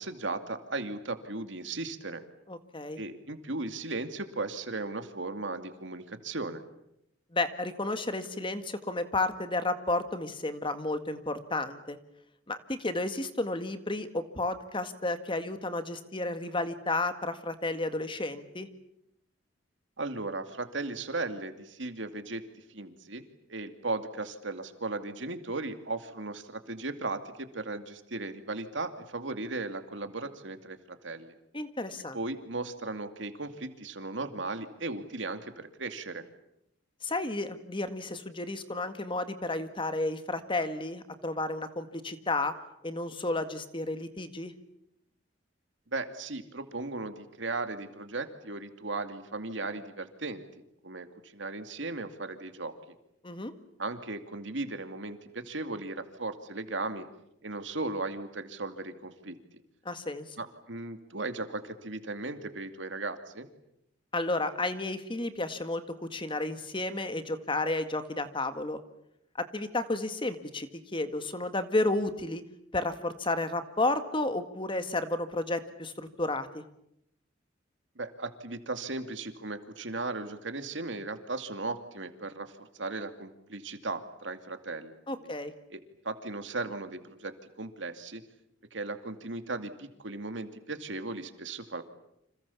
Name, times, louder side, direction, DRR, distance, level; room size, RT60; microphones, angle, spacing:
voice 1, 0.0-2.2 3.0-6.6 20.0-22.4 22.7-23.2 23.5-31.3 32.1-36.2 45.9-50.4 50.8-52.7 53.8-57.1 57.4-59.4 60.4-63.5 78.0-85.3 85.7-88.2 88.7-91.8, right 3 dB, 75° right, 8 dB, 2.5 m, -37 dB
voice 2, 2.5-3.0 7.3-12.0 12.5-18.7 31.5-32.2 37.0-42.5 42.8-44.5 53.2-53.5 59.9-60.4 64.1-68.8 69.5-72.4 72.7-76.6 85.1-85.5, left 2 dB, 25° left, 10 dB, 1.8 m, -32 dB
29.5 x 26.5 x 7.2 m, 0.79 s
head